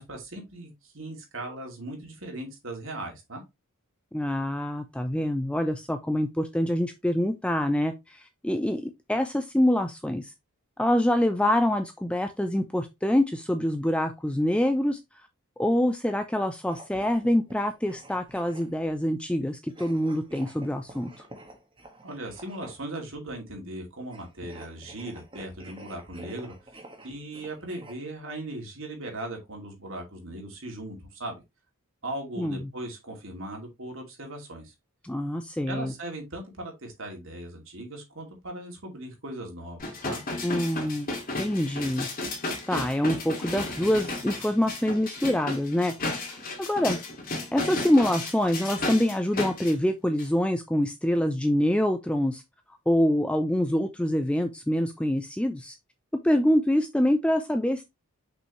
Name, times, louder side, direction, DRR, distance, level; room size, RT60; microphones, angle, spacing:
voice 1, 0.0-3.4 22.0-26.5 27.0-31.4 32.0-34.7 35.7-40.2, right 1 dB, 60° right, 2.5 m, -38 dB
voice 2, 4.1-10.3 10.8-15.0 15.6-21.3 32.4-32.7 35.0-35.9 40.4-41.1 41.4-42.1 42.7-47.0 47.5-52.4 52.9-55.8 56.2-57.8, left 1 dB, 5° left, 0.4 m, -25 dB
sound 1, 16.6-18.9 19.7-22.9 24.0-27.9, right 1 dB, 25° right, 1.5 m, -49 dB
sound 2, 39.8-49.7 50.2-50.3, left 2 dB, 40° left, 2.2 m, -34 dB
6.3 x 5.5 x 3.1 m
head